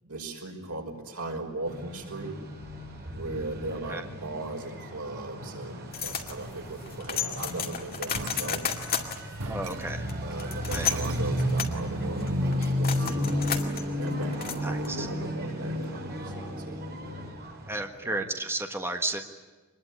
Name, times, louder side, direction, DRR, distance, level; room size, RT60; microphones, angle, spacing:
voice 1, 0.0-2.3 3.1-8.7 10.2-13.7 14.0-16.8 18.0-18.2, right 2 dB, 90° right, 2 dB, 5.7 m, -38 dB
sound 1, 1.7-17.8, equal, 45° right, 5.4 m, -33 dB
sound 2, 5.9-15.1, left 8 dB, 40° left, 2.4 m, -34 dB
sound 3, 8.1-9.0 9.4-11.8, right 2 dB, 75° right, 1.7 m, -39 dB
voice 2, 9.5-10.1 10.7-10.9 14.6-15.1 17.7-19.3, right 2 dB, 10° right, 4 dB, 1.5 m, -33 dB
25.0 x 21.5 x 9.7 m, 1.3 s
head